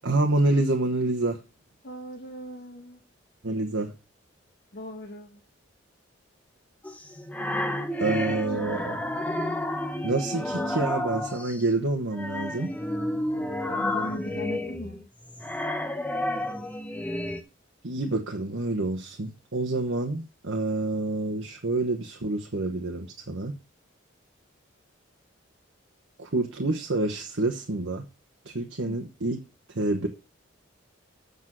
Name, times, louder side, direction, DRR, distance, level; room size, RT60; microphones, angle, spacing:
voice 1, 0.0-1.4 3.4-3.9 8.0-8.9 10.0-12.7 17.8-23.5 26.2-28.0 28.4-29.4 29.7-30.1, right 2 dB, 75° right, 1.2 m, -27 dB
voice 2, 1.8-3.0 4.7-5.4 8.5-9.0 13.7-15.1 28.9-29.1, equal, 55° left, 1.5 m, -39 dB
sound 1, 6.8-11.6 12.1-17.4, left 1 dB, 10° left, 0.8 m, -31 dB
8.3 x 6.4 x 6.1 m
head